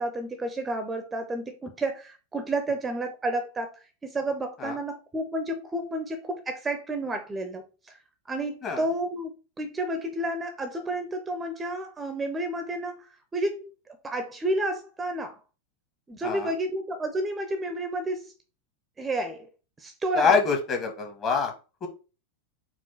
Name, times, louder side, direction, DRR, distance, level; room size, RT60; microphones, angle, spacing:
voice 1, 0.0-3.7 4.0-8.0 8.3-9.3 9.6-13.6 14.0-15.4 16.1-18.3 19.0-19.5 19.8-20.4, right 1 dB, 15° right, 0.6 m, -31 dB
voice 2, 20.1-21.5 21.8-21.9, left 5 dB, 30° left, 1.3 m, -25 dB
4.6 x 2.4 x 4.4 m
figure-of-eight pair, 90°, 0 cm